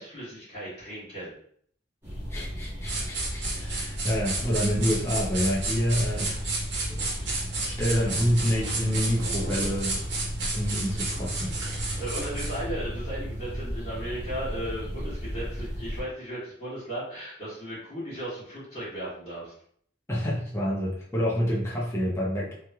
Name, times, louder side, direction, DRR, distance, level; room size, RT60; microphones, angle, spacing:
voice 1, 0.0-1.3 5.9-6.4 6.7-6.8 12.0-19.5, right 1 dB, 40° left, -14 dB, 1.5 m, -36 dB
sound 1, 2.0-16.0, equal, 15° right, 1.1 m, -34 dB
voice 2, 2.3-6.3 6.9-7.0 7.6-10.0 10.5-11.5 11.8-12.0 20.1-22.5, equal, 15° left, -6 dB, 0.6 m, -28 dB
sound 2, 2.9-12.6, right 3 dB, 65° right, 1.0 m, -32 dB
3.2 x 2.8 x 2.3 m, 0.62 s
head